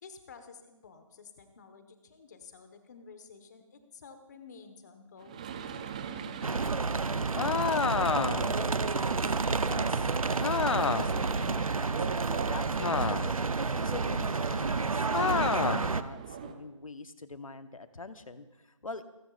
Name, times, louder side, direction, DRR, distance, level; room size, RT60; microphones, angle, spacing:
voice 1, 0.0-5.6, left 5 dB, 30° left, 8 dB, 1.4 m, -52 dB
sound 1, 5.2-16.5, right 7 dB, 15° right, 0.5 m, -42 dB
sound 2, 6.4-16.0, right 4 dB, 90° right, 0.8 m, -30 dB
sound 3, 7.4-8.6 10.4-11.2 12.8-13.5 15.1-15.9, left 5 dB, 60° left, 0.6 m, -29 dB
voice 2, 7.9-19.0, left 3 dB, 80° left, 10 dB, 1.2 m, -45 dB
29.0 x 14.0 x 2.5 m, 1.1 s
figure-of-eight pair, 165°, 17 cm